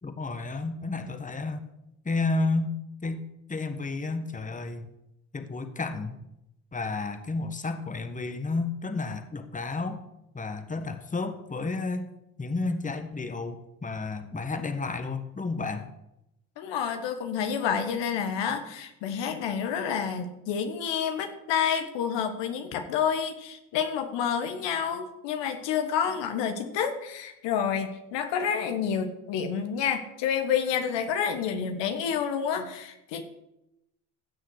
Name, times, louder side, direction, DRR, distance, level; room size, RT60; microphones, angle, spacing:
voice 1, 0.0-1.6 2.0-2.7 3.0-3.2 3.5-4.9 5.3-6.2 6.7-10.0 10.3-12.1 12.4-15.9, left 3 dB, 15° left, 8 dB, 1.3 m, -31 dB
voice 2, 16.6-33.2, left 7 dB, 70° left, 7 dB, 1.4 m, -29 dB
15.5 x 6.5 x 4.8 m, 0.87 s
hypercardioid pair, 60°, 45 cm